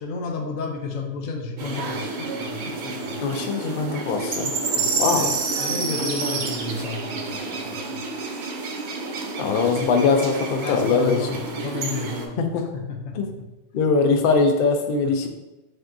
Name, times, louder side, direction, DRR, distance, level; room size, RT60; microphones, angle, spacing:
voice 1, 0.0-3.4 4.7-8.1 9.4-9.9 10.6-12.5 12.7-13.5 15.0-15.3, left 4 dB, 85° left, 4 dB, 1.0 m, -33 dB
sound 1, 1.6-12.3, right 4 dB, 55° right, 0.5 m, -29 dB
voice 2, 3.2-4.5 5.0-5.3 9.4-11.2 12.4-12.5 13.1-13.3 13.7-15.3, left 4 dB, 60° left, 4 dB, 0.6 m, -21 dB
5.7 x 2.7 x 2.5 m, 1.0 s
omnidirectional pair, 1.3 m